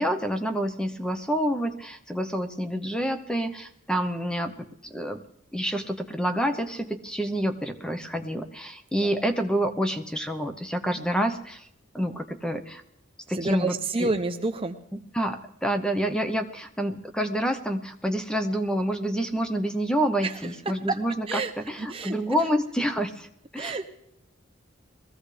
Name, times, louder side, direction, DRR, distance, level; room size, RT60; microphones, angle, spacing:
voice 1, 0.0-5.2 5.5-11.7 11.9-12.8 13.3-14.1 15.1-21.4 21.7-23.3 23.5-23.9, equal, 5° left, 6 dB, 0.8 m, -28 dB
voice 2, 13.3-14.8 20.2-20.4 20.9-21.0 21.3-21.5 21.8-22.4 23.6-23.9, right 3 dB, 25° right, 7 dB, 0.6 m, -29 dB
21.5 x 15.0 x 3.3 m, 0.74 s
head